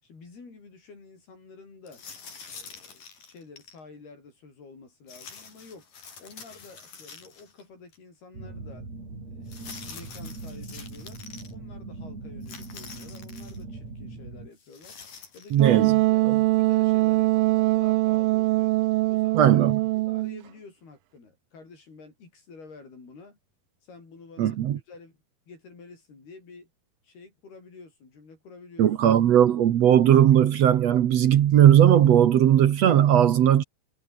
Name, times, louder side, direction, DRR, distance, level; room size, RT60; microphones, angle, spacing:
voice 1, 0.0-2.0 2.5-5.8 6.2-8.9 9.3-11.2 11.5-15.0 15.3-16.3 16.6-18.7 19.1-19.6 19.9-23.4 23.8-24.6 24.9-25.2 25.5-26.7 27.0-28.9, left 4 dB, 80° left, 10.0 m, -49 dB
sound 1, 1.9-3.8 5.1-7.6 7.9-8.0 9.5-11.5 12.4-13.6 14.6-15.6, left 5 dB, 60° left, 6.4 m, -46 dB
sound 2, 8.3-14.5, right 3 dB, 45° right, 9.1 m, -41 dB
voice 2, 15.5-15.9 16.3-16.4 19.3-19.8 24.4-24.8 28.8-33.6, right 10 dB, 65° right, 1.7 m, -18 dB
Wind instrument woodwind instrument, 15.6-20.4, right 20 dB, 80° right, 2.2 m, -22 dB
omnidirectional pair, 4.4 m